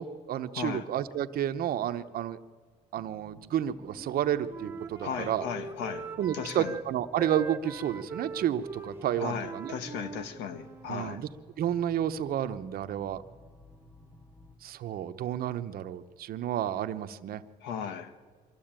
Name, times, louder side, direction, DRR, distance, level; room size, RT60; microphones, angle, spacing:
voice 1, 0.0-2.4 2.9-5.5 6.2-9.7 10.9-11.3 11.6-13.2 14.6-17.4, right 10 dB, 60° right, 1.0 m, -31 dB
sound 1, 2.9-14.5, left 1 dB, 15° left, 2.4 m, -56 dB
Wind instrument woodwind instrument, 3.8-6.9 7.2-10.9, right 4 dB, 15° right, 1.2 m, -42 dB
voice 2, 5.0-6.1 6.3-6.7 9.2-11.2 17.6-18.1, left 7 dB, 90° left, 1.5 m, -36 dB
24.0 x 14.5 x 9.0 m
cardioid pair, 110°, 17 cm